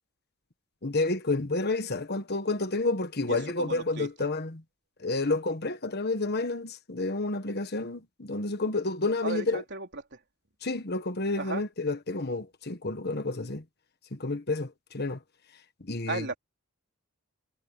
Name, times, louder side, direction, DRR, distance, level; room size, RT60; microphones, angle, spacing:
voice 1, 0.8-4.6 5.0-9.6 10.6-13.6 14.1-15.2 15.8-16.3, left 2 dB, 50° left, 1.5 m, -30 dB
voice 2, 3.2-4.3 9.2-10.2 11.3-11.6 16.1-16.4, right 3 dB, 55° right, 4.2 m, -36 dB
head